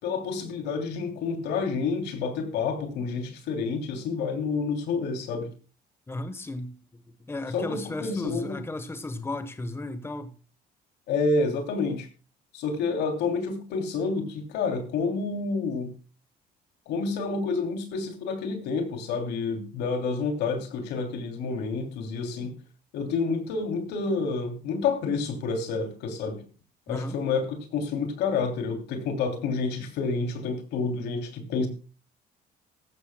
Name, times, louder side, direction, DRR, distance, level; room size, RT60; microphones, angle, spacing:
voice 1, 0.0-5.5 7.5-8.6 11.1-12.1 12.5-15.9 16.9-22.6 22.9-26.4 26.9-31.7, left 4 dB, 85° left, 3.1 m, -29 dB
voice 2, 6.1-10.3 26.9-27.2, left 2 dB, 15° left, 1.2 m, -35 dB
18.0 x 14.0 x 2.3 m
cardioid pair, 110°, 17 cm